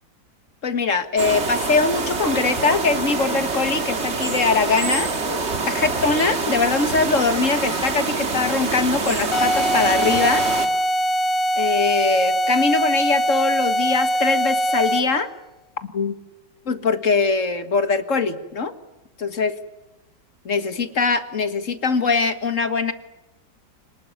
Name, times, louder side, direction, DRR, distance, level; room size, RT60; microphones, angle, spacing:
voice 1, 0.6-5.1 5.7-10.4 11.6-15.3 15.8-16.2 16.7-18.7 19.2-19.5 20.5-22.9, left 4 dB, 45° left, 10 dB, 1.9 m, -22 dB
sound 1, 1.2-10.7, right 3 dB, 35° right, 2.2 m, -25 dB
sound 2, 9.3-15.2, equal, 70° left, 1.9 m, -22 dB
28.5 x 19.5 x 9.7 m, 0.98 s
omnidirectional pair, 2.1 m